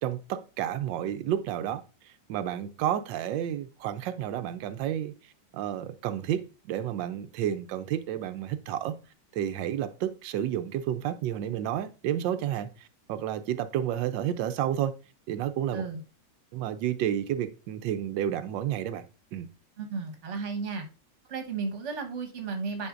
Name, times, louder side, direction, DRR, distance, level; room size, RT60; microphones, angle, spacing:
voice 1, 0.0-5.1 5.5-8.9 9.3-14.9 15.3-15.9 16.5-19.1 19.3-19.5, right 10 dB, 90° right, 1.3 m, -31 dB
voice 2, 19.8-20.9 21.3-22.9, right 4 dB, 45° right, 1.4 m, -34 dB
9.7 x 5.0 x 2.5 m
omnidirectional pair, 1.9 m